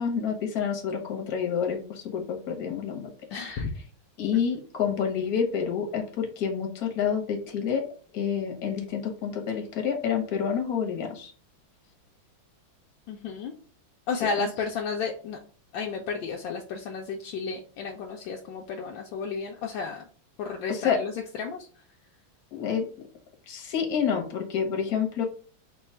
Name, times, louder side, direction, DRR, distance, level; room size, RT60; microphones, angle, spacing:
voice 1, 0.0-3.1 4.2-7.8 8.1-11.3 14.4-14.5 20.7-21.0 22.5-22.9 23.5-25.2, left 7 dB, 55° left, 3 dB, 1.4 m, -28 dB
voice 2, 3.3-3.8 13.1-13.5 14.1-15.4 15.7-20.0 20.4-21.1 21.4-21.7, left 5 dB, 75° left, 1 dB, 1.2 m, -32 dB
4.0 x 2.3 x 4.2 m, 0.40 s
omnidirectional pair, 2.1 m